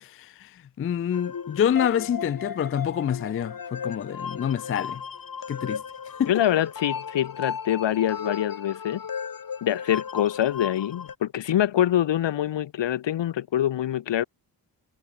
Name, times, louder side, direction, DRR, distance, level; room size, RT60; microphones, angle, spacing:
voice 1, 0.0-5.0 5.5-5.8 6.2-6.3, left 9 dB, 30° left, 0.4 m, -27 dB
sound 1, 1.1-11.1, left 6 dB, 45° left, 1.9 m, -35 dB
voice 2, 6.3-9.0 9.6-14.2, left 11 dB, 65° left, 1.1 m, -25 dB
supercardioid pair, 50°, 46 cm